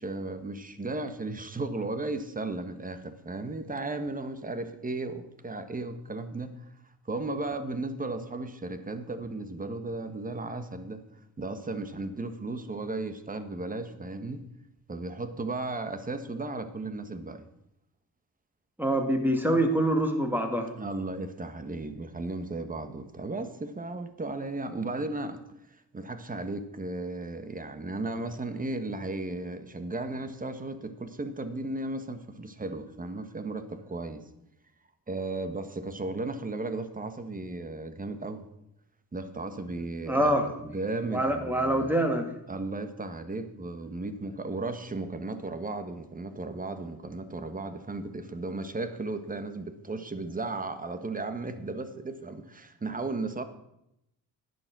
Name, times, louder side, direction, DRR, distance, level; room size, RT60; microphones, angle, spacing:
voice 1, 0.0-6.6 7.0-11.0 11.4-14.4 14.9-17.4 20.8-25.4 25.9-34.2 35.1-38.5 39.1-41.9 42.5-53.4, right 2 dB, 20° right, 9 dB, 1.4 m, -35 dB
voice 2, 18.8-20.7 40.1-40.5 41.1-42.3, right 1 dB, 5° right, 4 dB, 2.3 m, -25 dB
10.5 x 9.6 x 6.1 m, 0.82 s
cardioid pair, 85°, 37 cm